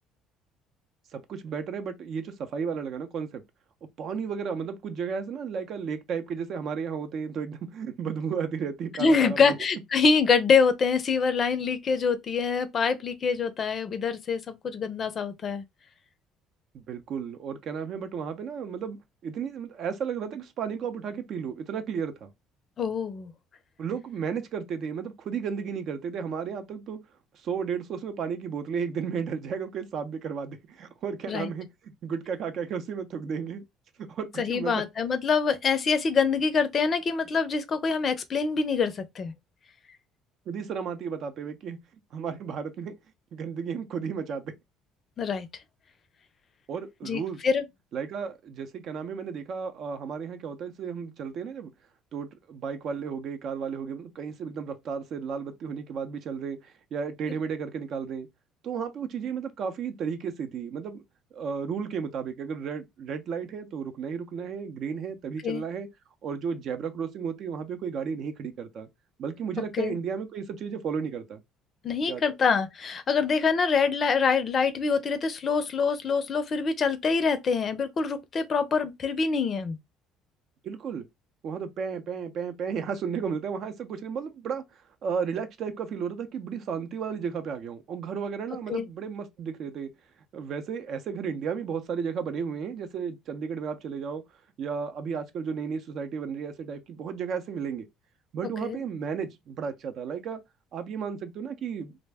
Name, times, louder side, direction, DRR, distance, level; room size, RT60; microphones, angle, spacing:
voice 1, 1.1-3.4 4.0-9.6 16.7-19.0 19.2-22.3 23.8-27.0 27.4-33.6 34.1-34.8 40.5-41.8 42.1-42.9 43.3-44.5 46.7-47.4 47.9-51.7 52.1-58.3 58.6-61.0 61.3-65.9 66.2-68.9 69.2-71.4 72.1-72.2 80.6-81.0 81.4-84.6 85.0-89.9 90.3-94.2 94.6-97.9 98.3-100.4 100.7-102.0, right 6 dB, 55° right, 0.6 m, -33 dB
voice 2, 9.0-15.6 22.8-23.3 31.3-31.5 34.4-39.3 45.2-45.5 47.0-47.6 65.4-65.6 69.8-69.9 71.8-79.8 88.7-88.9 98.6-98.8, left 5 dB, 40° left, 0.5 m, -25 dB
2.5 x 2.1 x 3.4 m
supercardioid pair, 95°, 0 cm